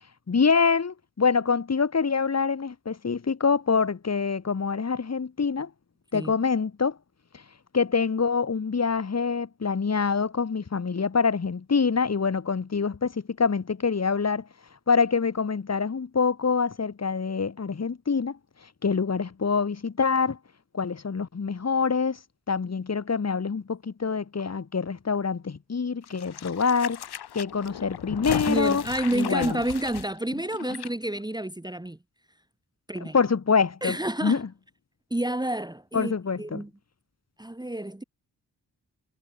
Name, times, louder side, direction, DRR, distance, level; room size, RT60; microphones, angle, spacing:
voice 1, 0.3-5.7 6.1-7.0 7.7-14.4 14.9-18.4 18.8-20.4 20.7-22.2 22.5-27.0 27.3-28.8 29.1-29.6 33.1-34.0 34.2-34.5 35.9-36.6, left 5 dB, 40° left, 1.7 m, -25 dB
sound 1, 26.1-30.9 31.2-31.3, left 10 dB, 70° left, 1.0 m, -35 dB
voice 2, 28.5-32.0 32.9-33.2 33.8-34.4 35.1-36.1 36.4-36.7 37.4-38.0, right 1 dB, 10° right, 1.8 m, -29 dB
cardioid pair, 50°, 40 cm